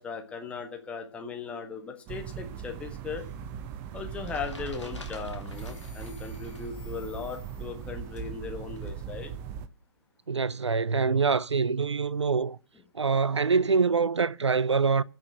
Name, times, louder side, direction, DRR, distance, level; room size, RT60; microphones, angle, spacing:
voice 1, 0.0-3.2 3.9-9.3, left 5 dB, 10° left, 1.5 m, -38 dB
sound 1, 2.1-9.7, right 7 dB, 15° right, 0.5 m, -39 dB
sound 2, 3.2-4.1 4.6-8.2, left 8 dB, 25° left, 3.5 m, -58 dB
sound 3, 3.6-6.7 7.0-8.9, left 2 dB, 80° left, 2.6 m, -49 dB
voice 2, 10.3-12.6 12.9-15.0, right 5 dB, 75° right, 0.5 m, -25 dB
10.5 x 6.2 x 7.8 m
figure-of-eight pair, 130°, 15 cm